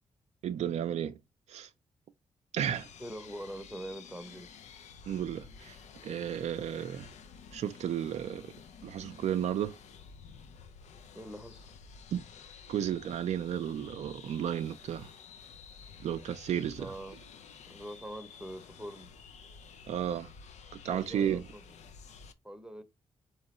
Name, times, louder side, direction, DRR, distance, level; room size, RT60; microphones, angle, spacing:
voice 1, 0.4-1.2 1.5-1.7 2.5-2.9 5.1-5.8 6.0-7.1 7.5-8.5 8.8-9.8 12.1-12.3 12.7-15.1 16.0-16.9 19.9-20.3 20.8-21.5, right 9 dB, 75° right, 0.4 m, -33 dB
sound 1, 2.7-22.3, left 6 dB, 80° left, 0.5 m, -52 dB
voice 2, 3.0-4.5 11.1-11.7 16.8-17.2 17.7-19.1 20.8-21.6 22.4-22.8, right 1 dB, 5° right, 0.8 m, -43 dB
3.6 x 3.1 x 4.2 m
cardioid pair, 65°, 12 cm